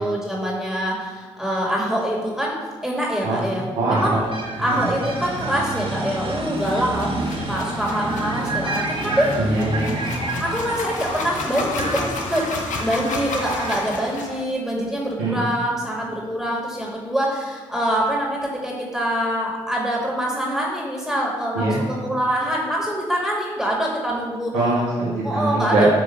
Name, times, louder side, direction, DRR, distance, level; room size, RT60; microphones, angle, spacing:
voice 1, 0.0-4.2 4.6-7.2 7.5-9.4 10.4-24.6 25.2-25.9, equal, ahead, -3 dB, 2.1 m, -25 dB
voice 2, 3.2-4.2 4.6-4.9 9.4-10.0 15.2-15.4 21.5-21.8 24.5-25.9, right 2 dB, 90° right, -5 dB, 1.4 m, -22 dB
sound 1, 3.9-13.9, right 2 dB, 45° right, 1.8 m, -29 dB
sound 2, 6.5-14.4, left 3 dB, 75° left, 1.0 m, -32 dB
9.1 x 3.4 x 5.8 m, 1.4 s
hypercardioid pair, 45°, 13 cm